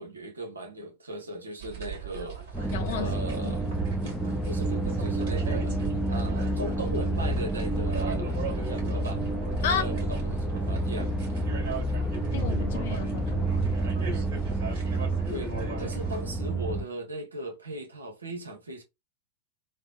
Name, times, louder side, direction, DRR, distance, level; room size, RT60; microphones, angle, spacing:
voice 1, 0.0-3.6 4.5-5.8 6.1-9.2 9.6-11.1 15.3-15.5 15.8-18.8, right 1 dB, 75° right, 0.8 m, -38 dB
sound 1, 1.6-16.2, right 7 dB, 50° right, 1.8 m, -39 dB
sound 2, 2.5-16.8, right 1 dB, 5° left, 0.5 m, -29 dB
voice 2, 2.7-3.1 3.4-3.6 9.6-9.8 12.3-13.7, left 7 dB, 55° left, 0.6 m, -32 dB
3.4 x 2.1 x 2.3 m
figure-of-eight pair, 90°, 0 cm